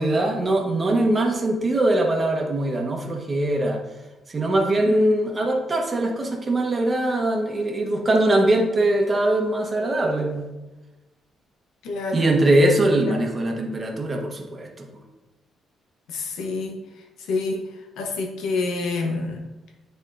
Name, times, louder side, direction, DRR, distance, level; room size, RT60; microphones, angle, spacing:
voice 1, 0.0-3.8 4.3-10.5 12.1-14.9, right 1 dB, 30° right, 1 dB, 1.3 m, -22 dB
voice 2, 4.8-5.3 11.8-12.3 13.0-13.2 16.1-16.7 17.2-17.6 18.0-19.4, left 3 dB, 85° left, 2 dB, 1.1 m, -28 dB
9.8 x 3.6 x 2.7 m, 1.1 s
cardioid pair, 90°, 0 cm